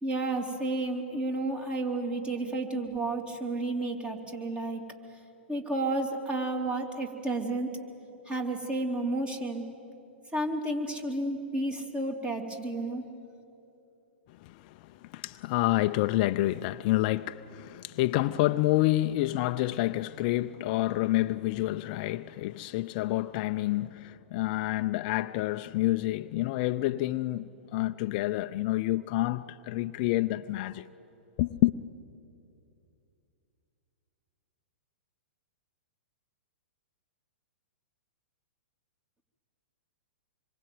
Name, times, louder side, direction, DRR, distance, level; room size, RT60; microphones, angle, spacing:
voice 1, 0.0-4.8 5.5-7.7 8.3-9.6 10.3-13.0, right 2 dB, 15° right, 3.1 m, -31 dB
voice 2, 14.3-30.9 31.4-31.7, left 17 dB, 45° left, 0.6 m, -28 dB
26.0 x 23.0 x 9.3 m
hypercardioid pair, 115°, 6 cm